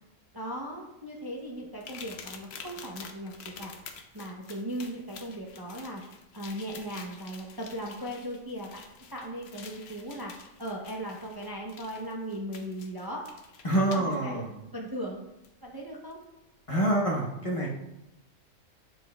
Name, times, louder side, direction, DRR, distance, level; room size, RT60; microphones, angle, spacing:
voice 1, 0.3-3.8 4.1-6.0 6.3-8.8 9.1-10.3 10.6-13.3 13.8-14.4 14.7-15.2 15.6-16.2, equal, 25° right, -2 dB, 0.6 m, -38 dB
sound 1, 1.8-14.2 15.4-15.5 16.1-16.2, left 5 dB, 60° left, 0.9 m, -48 dB
voice 2, 13.6-14.5 16.7-17.7, right 1 dB, 30° left, -4 dB, 0.9 m, -26 dB
10.5 x 4.3 x 2.3 m, 0.91 s
omnidirectional pair, 1.4 m